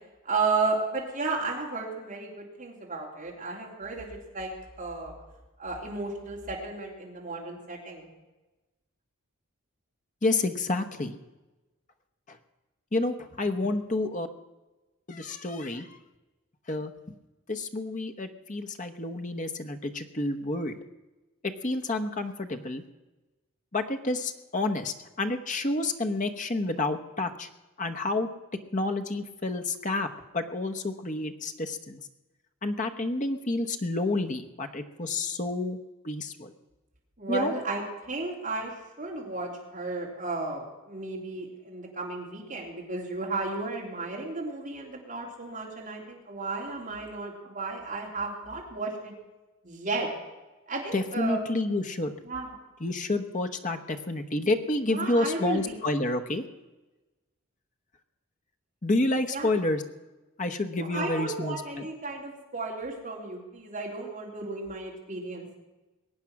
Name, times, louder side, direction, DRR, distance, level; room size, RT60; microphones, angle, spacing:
voice 1, 0.2-4.1 4.3-4.5 4.8-5.1 5.6-8.1 37.2-49.1 49.6-50.1 50.7-51.4 52.2-52.5 54.9-55.8 59.3-59.5 60.8-65.4, right 3 dB, 40° right, -2 dB, 3.4 m, -33 dB
voice 2, 10.2-11.1 12.3-12.4 12.9-14.3 15.1-16.0 16.7-17.1 17.5-20.7 21.4-22.8 23.7-27.5 27.8-28.3 28.7-30.1 30.3-32.0 32.6-35.8 36.0-36.5 37.3-37.5 50.9-52.1 52.8-56.4 58.8-59.8 60.4-61.6, left 2 dB, 35° left, 6 dB, 1.0 m, -29 dB
21.5 x 8.9 x 6.0 m, 1.1 s
head